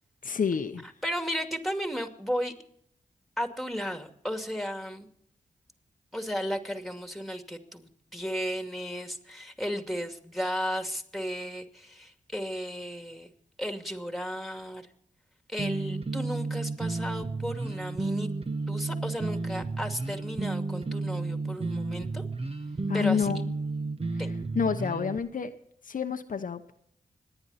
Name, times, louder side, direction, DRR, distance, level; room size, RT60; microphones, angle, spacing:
voice 1, 0.2-0.8 22.9-23.4 24.5-25.5 25.8-26.7, left 6 dB, 70° left, 7 dB, 1.0 m, -28 dB
voice 2, 0.8-2.5 3.4-5.1 6.1-13.3 13.6-14.9 15.5-18.3 18.7-22.2 22.9-23.3 24.2-24.3, equal, ahead, 6 dB, 2.4 m, -34 dB
sound 1, 15.6-25.2, right 3 dB, 40° right, 1.4 m, -32 dB
25.5 x 10.0 x 4.2 m, 0.68 s
cardioid pair, 60°, 14 cm